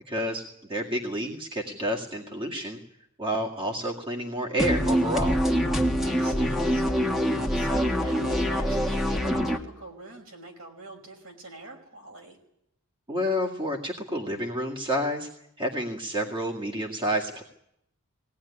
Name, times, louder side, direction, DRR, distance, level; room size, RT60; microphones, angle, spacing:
voice 1, 0.1-0.4 0.7-2.8 3.2-5.4 7.4-7.7 13.1-15.3 15.6-17.4, equal, 25° right, -2 dB, 2.1 m, -29 dB
sound 1, 4.6-9.6, equal, ahead, 1.5 m, -25 dB
voice 2, 6.0-6.9 7.5-12.4, right 2 dB, 70° right, 2 dB, 5.4 m, -45 dB
20.0 x 18.0 x 9.9 m, 0.79 s
head